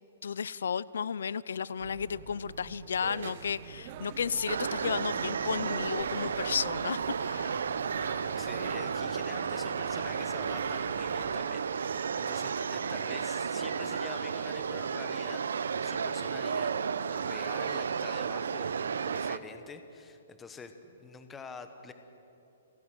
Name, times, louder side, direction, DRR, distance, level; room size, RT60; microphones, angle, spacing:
voice 1, 0.2-7.6, left 7 dB, 80° left, 21 dB, 0.5 m, -33 dB
sound 1, 1.8-11.3, right 5 dB, 60° right, 1.7 m, -45 dB
sound 2, 3.0-8.8, right 11 dB, 25° right, 0.6 m, -46 dB
sound 3, 4.5-19.4, right 6 dB, 85° right, 0.8 m, -33 dB
voice 2, 7.5-7.8 8.4-16.7 17.1-21.9, left 4 dB, 10° left, 8 dB, 0.9 m, -46 dB
30.0 x 10.5 x 9.1 m, 2.9 s
hypercardioid pair, 180°, 0 cm